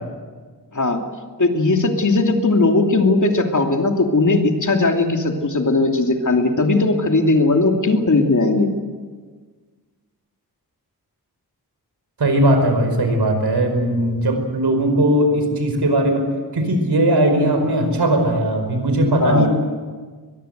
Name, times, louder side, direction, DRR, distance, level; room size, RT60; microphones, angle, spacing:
voice 1, 1.4-8.7 19.2-19.5, left 3 dB, 50° left, 3 dB, 2.8 m, -18 dB
voice 2, 12.2-16.3 16.5-19.5, right 1 dB, 90° right, 6 dB, 5.0 m, -18 dB
23.0 x 22.0 x 8.1 m, 1.5 s
wide cardioid pair, 110°, 39 cm